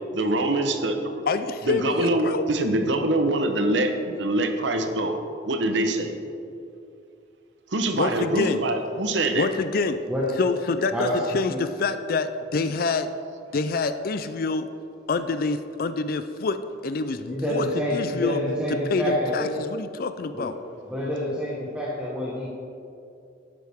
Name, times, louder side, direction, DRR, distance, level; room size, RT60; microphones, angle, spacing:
voice 1, 0.1-1.2 1.7-5.1 5.5-6.1 7.7-9.5, right 1 dB, 75° right, 6 dB, 1.0 m, -24 dB
voice 2, 1.3-2.4 7.9-8.6 9.3-10.0 10.4-13.1 13.5-14.7 15.1-17.7 17.9-18.4 18.9-20.5, left 4 dB, 50° left, 11 dB, 0.4 m, -26 dB
voice 3, 10.9-11.2 11.5-11.6 17.3-19.5 20.3-20.5 20.9-22.5, equal, 5° right, -7 dB, 1.3 m, -27 dB
12.0 x 9.4 x 3.6 m, 2.6 s
head